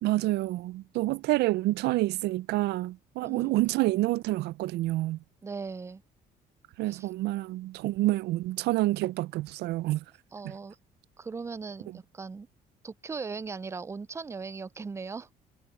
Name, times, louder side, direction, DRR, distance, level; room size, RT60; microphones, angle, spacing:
voice 1, 0.0-5.2 6.8-10.0 10.4-10.5, right 18 dB, 80° right, 0.5 m, -28 dB
voice 2, 3.2-3.5 5.4-6.0 6.9-7.1 10.3-10.8 11.2-12.5 12.8-15.3, right 4 dB, 15° right, 0.4 m, -38 dB
cardioid pair, 110°, 17 cm